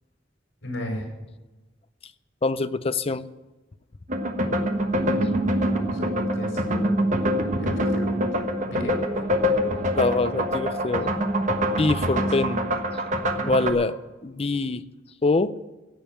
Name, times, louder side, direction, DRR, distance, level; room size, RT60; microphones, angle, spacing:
voice 1, 0.6-1.1 4.9-7.0 7.5-8.2 8.6-9.0 12.2-12.3 13.4-13.5, equal, 90° left, 1 dB, 5.0 m, -34 dB
voice 2, 2.4-3.3 10.0-11.1 11.8-12.6 13.5-14.0 14.2-14.8 15.2-15.6, left 3 dB, 30° left, 14 dB, 0.5 m, -24 dB
sound 1, 4.1-13.7, equal, 40° right, 1.3 m, -25 dB
16.5 x 7.2 x 9.0 m, 1.1 s
head